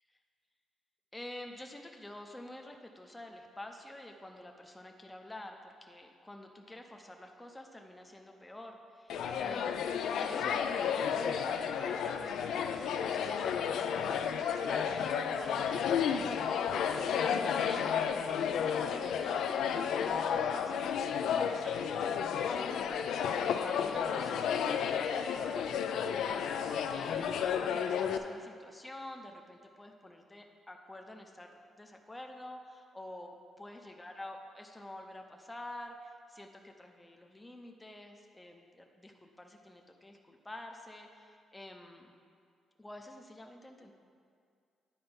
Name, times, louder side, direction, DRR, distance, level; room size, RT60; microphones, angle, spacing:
voice 1, 1.1-16.9 17.2-17.9 18.5-42.1 42.8-43.9, left 1 dB, 10° left, 3 dB, 0.6 m, -49 dB
sound 1, 9.1-28.2, left 7 dB, 75° left, 0.4 m, -32 dB
9.8 x 4.4 x 5.2 m, 2.3 s
cardioid pair, 140°, 0 cm